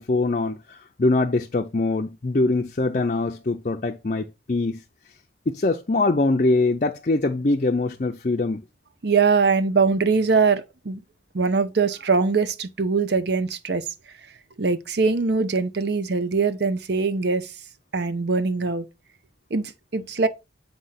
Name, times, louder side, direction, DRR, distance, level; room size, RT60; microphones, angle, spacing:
voice 1, 0.0-4.8 5.5-8.6, left 2 dB, 40° left, 0.5 m, -23 dB
voice 2, 9.0-11.0 11.3-13.8 14.6-17.5 17.9-18.9 19.5-20.3, right 4 dB, 55° right, 0.7 m, -22 dB
7.9 x 2.9 x 5.7 m
head